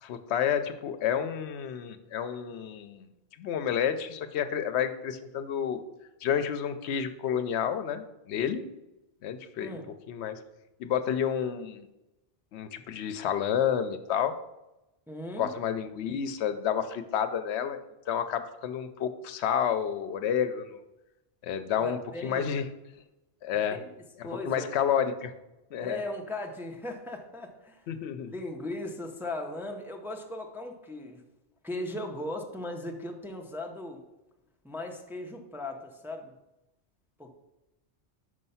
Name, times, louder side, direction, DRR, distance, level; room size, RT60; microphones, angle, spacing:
voice 1, 0.0-3.1 3.4-5.8 6.2-8.6 9.2-9.8 10.1-10.4 10.8-11.9 12.5-14.4 15.4-17.8 18.1-20.8 21.4-22.6 23.4-23.8 24.2-25.3 25.7-26.0 27.9-28.3, left 8 dB, 80° left, 11 dB, 0.8 m, -30 dB
voice 2, 15.1-15.5 21.8-22.5 23.7-23.9 24.2-24.8 25.8-27.9 28.3-31.2 31.6-34.0 34.6-36.3 37.2-37.3, left 1 dB, 5° right, 2 dB, 0.6 m, -38 dB
5.4 x 5.0 x 5.5 m, 0.97 s
omnidirectional pair, 1.1 m